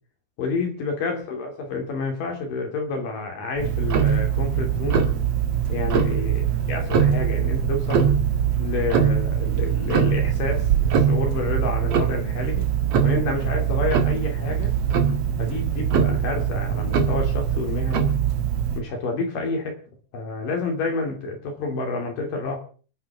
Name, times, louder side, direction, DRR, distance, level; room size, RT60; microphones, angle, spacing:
voice 1, 0.4-5.1 5.7-8.1 8.6-12.7 13.0-14.7 15.4-18.1 18.8-19.8 20.1-22.6, left 3 dB, 55° left, 2 dB, 4.3 m, -29 dB
Tick-tock, 3.6-18.8, right 8 dB, 50° right, 2.0 m, -22 dB
29.0 x 9.8 x 3.6 m, 0.40 s
omnidirectional pair, 4.7 m